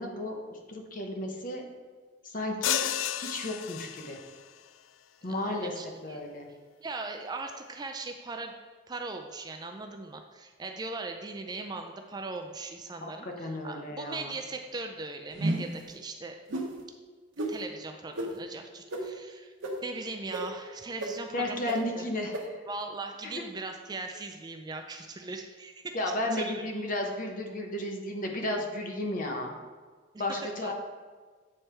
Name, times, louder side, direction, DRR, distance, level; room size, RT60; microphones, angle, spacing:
voice 1, 0.0-1.6 2.2-2.9 3.1-4.2 5.2-5.7 6.0-6.5 13.0-14.4 21.3-22.6 23.2-23.3 25.9-29.6 30.2-30.7, left 1 dB, 45° left, 2 dB, 0.9 m, -33 dB
sound 1, 2.6-4.4, left 11 dB, 85° left, 0.3 m, -32 dB
voice 2, 5.2-6.2 6.8-8.5 8.9-16.4 17.5-19.5 19.8-22.1 22.7-25.9 26.3-26.6 30.3-30.7, right 3 dB, 20° right, 5 dB, 0.3 m, -39 dB
sound 2, 15.3-15.8 16.5-16.7 17.4-17.5 18.2-18.3 18.9-19.0 19.6-19.7 20.3-20.4 21.0-21.1 21.7-21.8 22.3-22.4, right 2 dB, 85° right, 0.9 m, -31 dB
8.6 x 3.3 x 4.4 m, 1.4 s
head